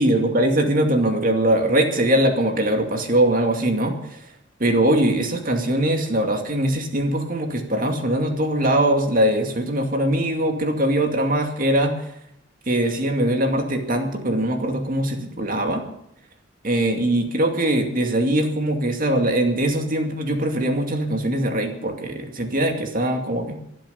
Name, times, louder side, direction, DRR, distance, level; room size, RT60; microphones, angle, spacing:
voice 1, 0.0-4.3 4.6-12.1 12.7-15.8 16.6-23.6, right 1 dB, 45° right, 4 dB, 2.4 m, -21 dB
23.0 x 7.8 x 7.0 m, 0.75 s
head